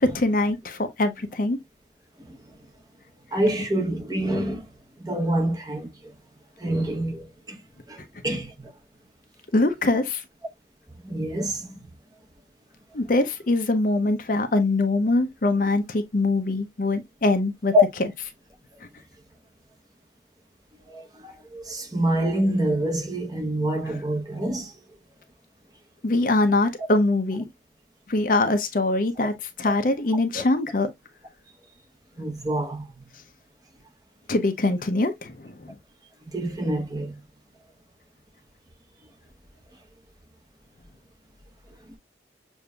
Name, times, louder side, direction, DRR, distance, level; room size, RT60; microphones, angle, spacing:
voice 1, 0.0-1.6 9.5-10.2 12.9-17.7 26.0-27.5 28.1-30.9 34.3-35.7, left 2 dB, 50° left, 0.6 m, -23 dB
voice 2, 3.3-4.7 5.0-5.9 6.6-7.6 7.9-8.7 11.0-11.7 17.7-17.8 20.9-24.7 32.2-32.9 36.3-37.2, equal, 20° right, 0.8 m, -26 dB
6.7 x 2.6 x 2.2 m
head